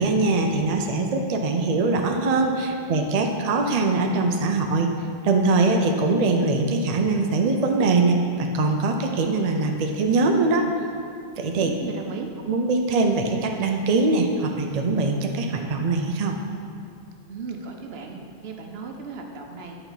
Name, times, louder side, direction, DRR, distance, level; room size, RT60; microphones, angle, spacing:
voice 1, 0.0-4.9 5.2-10.7 11.4-11.7 12.5-16.4, right 3 dB, 50° right, 3 dB, 0.5 m, -22 dB
voice 2, 11.6-12.3 17.3-19.8, right 5 dB, 70° right, 2 dB, 0.9 m, -36 dB
9.0 x 4.4 x 4.0 m, 2.4 s
omnidirectional pair, 1.1 m